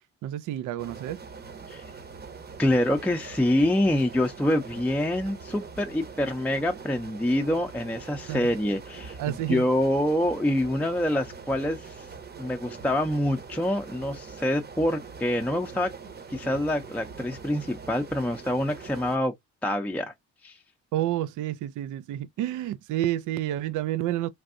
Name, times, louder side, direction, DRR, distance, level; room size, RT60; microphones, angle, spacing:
voice 1, 0.2-1.2 8.3-8.4 9.2-9.6 20.9-24.3, right 13 dB, 80° right, 0.5 m, -29 dB
sound 1, 0.8-19.2, right 5 dB, 35° right, 0.8 m, -43 dB
voice 2, 2.6-12.1 12.4-15.9 16.3-19.3 19.6-20.1 20.4-20.6, left 1 dB, 5° left, 0.5 m, -26 dB
3.3 x 2.6 x 2.4 m
cardioid pair, 90°, 30 cm